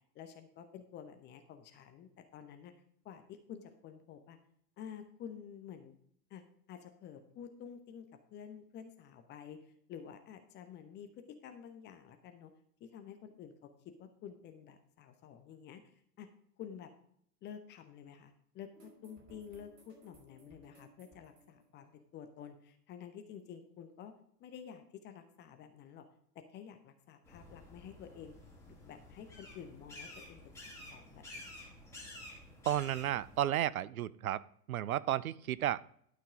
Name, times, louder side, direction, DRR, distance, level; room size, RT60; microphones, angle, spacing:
voice 1, 0.1-2.7 3.0-4.4 4.8-6.0 6.3-6.4 6.7-12.5 12.8-13.7 14.0-16.3 16.6-16.9 17.4-24.1 24.4-26.1 26.5-28.3 28.6-31.7, left 8 dB, 20° left, 8 dB, 0.9 m, -50 dB
sound 1, 18.7-22.5, right 1 dB, 35° right, 4.6 m, -61 dB
sound 2, 27.2-33.4, left 1 dB, 5° left, 3.3 m, -51 dB
voice 2, 32.7-34.4 34.7-35.8, right 12 dB, 60° right, 18 dB, 0.6 m, -33 dB
11.5 x 5.8 x 4.8 m, 0.65 s
figure-of-eight pair, 95°, 48 cm